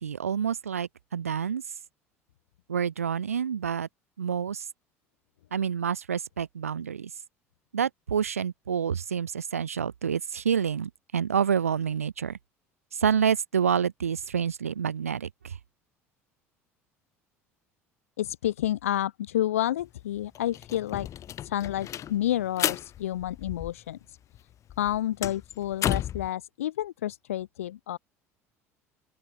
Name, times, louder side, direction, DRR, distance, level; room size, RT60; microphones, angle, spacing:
voice 1, 0.0-1.6 2.7-3.9 4.2-4.7 5.5-7.1 7.7-12.4 12.9-15.6, right 7 dB, 80° right, 1.4 m, -28 dB
voice 2, 18.2-21.1 21.4-24.2 24.8-28.0, left 12 dB, 70° left, 1.0 m, -30 dB
sound 1, 19.8-19.9 20.2-24.1 24.4-26.3, left 11 dB, 40° left, 2.9 m, -33 dB
open air
figure-of-eight pair, 65°, 8 cm